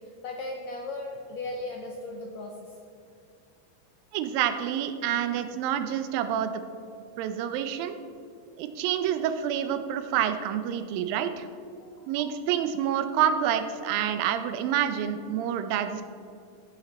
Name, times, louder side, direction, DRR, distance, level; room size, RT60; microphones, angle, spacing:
voice 1, 0.2-2.7 5.1-5.2 11.8-12.7, left 2 dB, 80° left, 1 dB, 1.6 m, -38 dB
voice 2, 4.1-6.6 7.2-8.0 8.6-11.5 12.1-16.0, right 9 dB, 90° right, 9 dB, 2.4 m, -28 dB
15.0 x 6.0 x 4.2 m, 2.4 s
omnidirectional pair, 4.0 m